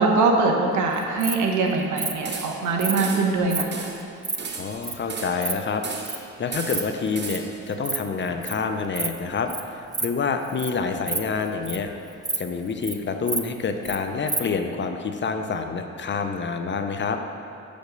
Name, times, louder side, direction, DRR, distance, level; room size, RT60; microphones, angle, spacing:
voice 1, 0.0-3.6, right 3 dB, 75° right, 2 dB, 1.1 m, -22 dB
Insect, 0.9-1.4 2.0-2.1 2.8-3.0 3.5-3.6 4.0-4.4 4.8-4.9 5.2-5.5 6.0-6.2 6.5-6.8 7.1-7.4 7.7-8.0 8.2-8.5 8.9-9.2 9.5-9.6 9.9-10.1 10.4-10.7 11.0-11.9 12.2-12.4 12.7-12.9 13.3-14.0 14.3-14.4, right 3 dB, 15° right, 0.5 m, -28 dB
sound 1, 2.3-2.7 3.0-3.4 3.7-4.0 4.4-5.5 5.8-6.2 6.5-7.6, right 4 dB, 35° right, 0.8 m, -34 dB
voice 2, 4.5-5.8 6.4-11.9 12.4-17.2, left 5 dB, 40° left, 6 dB, 0.6 m, -27 dB
7.8 x 5.2 x 5.2 m, 2.6 s
cardioid pair, 90°, 30 cm